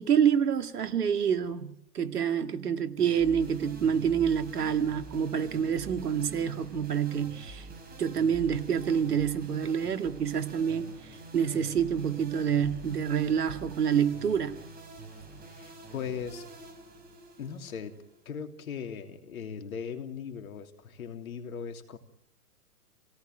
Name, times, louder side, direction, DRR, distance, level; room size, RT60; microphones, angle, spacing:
voice 1, 0.0-1.7 1.9-7.7 8.0-11.0 11.3-14.6, right 8 dB, 75° right, 2.2 m, -27 dB
sound 1, 3.0-18.4, right 2 dB, 20° right, 6.0 m, -46 dB
voice 2, 15.4-16.5 17.4-18.0 18.2-22.0, left 7 dB, 65° left, 3.0 m, -39 dB
28.0 x 17.5 x 9.2 m
hypercardioid pair, 130°, 46 cm